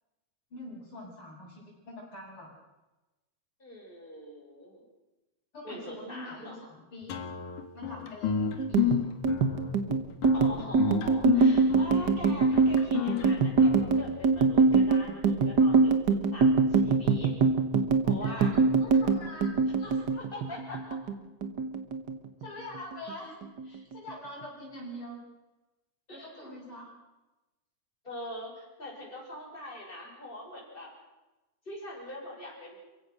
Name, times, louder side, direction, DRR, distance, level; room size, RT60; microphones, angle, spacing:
voice 1, 0.5-2.5 5.5-7.2 7.7-9.0 18.2-19.5 19.8-20.1 22.4-23.4 23.6-25.2 26.1-26.9, left 1 dB, 40° left, -8 dB, 7.4 m, -44 dB
voice 2, 3.6-4.8 5.6-6.6 10.3-17.3 18.0-18.5 19.7-19.8 20.1-21.0 26.1-26.6 28.0-30.9 31.7-32.8, left 1 dB, 15° left, -2 dB, 7.4 m, -43 dB
sound 1, 7.1-14.5, left 9 dB, 80° left, 3.2 m, -32 dB
sound 2, 8.6-21.2 21.4-22.5 22.7-23.1 23.4-24.1, right 4 dB, 45° right, 1.6 m, -24 dB
29.5 x 16.0 x 6.4 m, 1.0 s
omnidirectional pair, 3.5 m